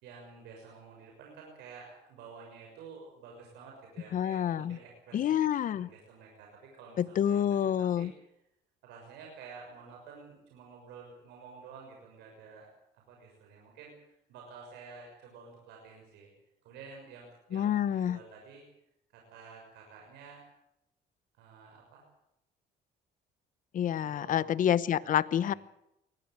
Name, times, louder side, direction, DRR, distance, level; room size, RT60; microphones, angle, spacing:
voice 1, 0.0-8.1 8.8-12.7 13.1-16.3 16.6-18.6 19.1-20.4 21.4-22.0 23.9-24.5 25.0-25.6, right 5 dB, 85° right, 0 dB, 6.5 m, -51 dB
voice 2, 4.1-4.8 5.1-5.9 7.0-8.1 17.5-18.2 23.7-25.5, left 10 dB, 50° left, 18 dB, 1.0 m, -28 dB
22.5 x 18.0 x 8.1 m, 0.84 s
cardioid pair, 110°, 17 cm